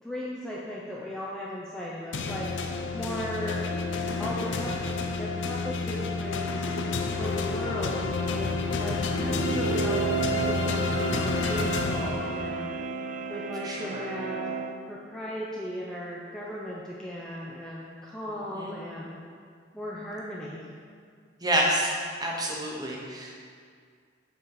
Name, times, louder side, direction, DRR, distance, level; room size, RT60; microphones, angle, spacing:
voice 1, 0.0-2.7 2.9-3.7 4.2-4.8 5.2-6.7 7.2-12.7 13.3-14.6 14.8-19.2 19.7-20.7, left 1 dB, 5° left, -6 dB, 0.6 m, -37 dB
sound 1, 2.1-12.7, left 3 dB, 80° left, 0.5 m, -30 dB
sound 2, 9.1-14.8, right 4 dB, 40° right, 0.3 m, -32 dB
voice 2, 13.6-14.1 18.5-18.7 21.4-21.9 22.2-23.3, right 1 dB, 20° right, -3 dB, 1.0 m, -28 dB
7.4 x 5.2 x 4.8 m, 2.1 s
head